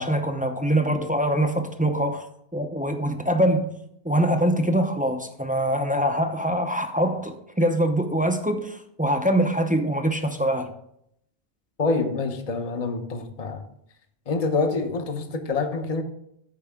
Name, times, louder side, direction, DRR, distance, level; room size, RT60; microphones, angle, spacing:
voice 1, 0.0-2.2 2.5-3.7 4.0-10.7, right 1 dB, 10° right, 0.5 m, -23 dB
voice 2, 11.8-13.6 14.3-16.0, left 3 dB, 35° left, 0.8 m, -26 dB
13.5 x 4.7 x 3.5 m
omnidirectional pair, 1.2 m